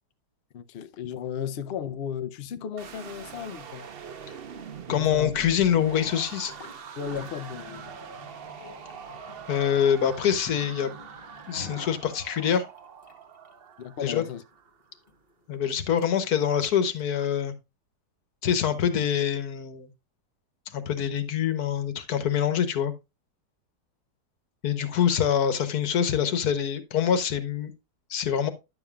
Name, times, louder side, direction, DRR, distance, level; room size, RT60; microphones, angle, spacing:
voice 1, 0.5-3.9 4.9-5.3 7.0-7.9 13.8-14.4, left 8 dB, 85° left, 0.5 m, -34 dB
sound 1, 2.8-14.8, right 7 dB, 60° right, 0.6 m, -43 dB
voice 2, 4.9-6.5 9.5-10.9 11.5-12.7 14.0-14.2 15.5-17.5 18.4-19.9 20.7-22.9 24.6-27.7 28.1-28.5, left 8 dB, 65° left, 1.5 m, -25 dB
sound 2, 6.5-17.4, left 2 dB, 35° left, 1.1 m, -48 dB
10.5 x 7.1 x 2.3 m
omnidirectional pair, 1.9 m